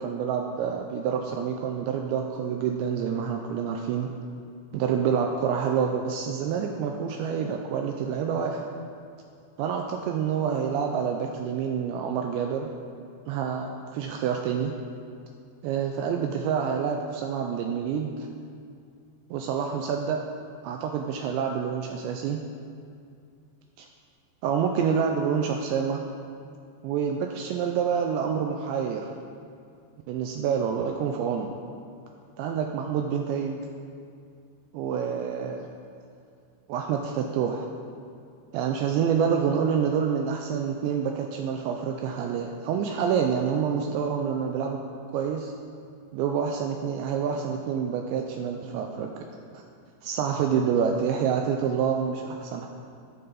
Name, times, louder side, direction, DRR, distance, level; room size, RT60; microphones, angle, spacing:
voice 1, 0.0-4.1 4.7-8.7 9.6-12.7 13.3-14.7 15.6-18.1 19.3-20.2 20.6-22.4 23.8-23.9 24.4-26.0 26.8-29.1 30.1-31.5 32.4-33.6 34.7-35.7 36.7-37.7 38.5-44.8 45.1-45.5 46.1-49.1 49.5-49.6 50.0-52.7, right 7 dB, 85° right, 2 dB, 2.6 m, -27 dB
16.5 x 6.7 x 4.0 m, 2.4 s
omnidirectional pair, 5.6 m